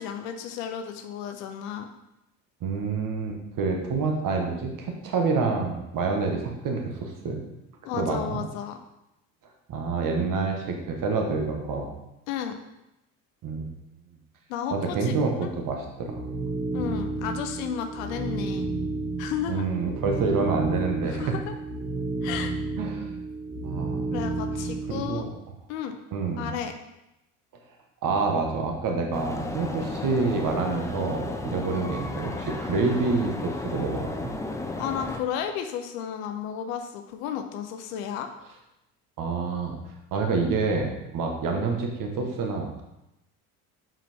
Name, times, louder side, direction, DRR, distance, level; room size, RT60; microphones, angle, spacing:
voice 1, 0.0-1.9 7.8-8.8 12.3-12.6 14.5-15.5 16.7-18.7 19.2-19.6 21.0-21.5 22.2-22.5 24.1-25.2 25.7-26.0 26.4-26.7 34.8-38.3, left 8 dB, 90° left, 6 dB, 0.6 m, -33 dB
voice 2, 2.6-7.4 8.0-8.4 9.7-11.9 13.4-13.7 14.7-16.2 19.5-21.2 22.8-23.1 23.6-24.1 24.9-25.3 26.1-26.5 28.0-34.1 39.2-39.7 40.1-42.8, right 4 dB, 55° right, 2 dB, 1.3 m, -27 dB
sound 1, 16.1-25.3, right 3 dB, 25° right, 1.4 m, -31 dB
sound 2, 29.1-35.2, left 2 dB, 5° left, 0.7 m, -34 dB
5.7 x 4.9 x 3.6 m, 0.90 s
supercardioid pair, 75°, 40 cm